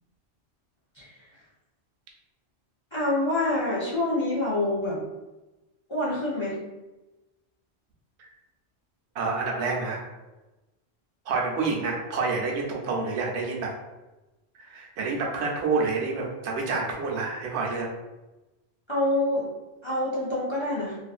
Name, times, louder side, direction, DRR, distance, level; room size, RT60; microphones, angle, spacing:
voice 1, 2.9-5.0 5.9-6.6 18.9-19.5 19.8-21.0, left 1 dB, 40° left, -7 dB, 0.4 m, -26 dB
voice 2, 9.1-10.0 11.3-13.7 14.6-17.9, right 4 dB, 85° right, -1 dB, 0.9 m, -28 dB
2.5 x 2.4 x 2.3 m, 1.1 s
omnidirectional pair, 1.1 m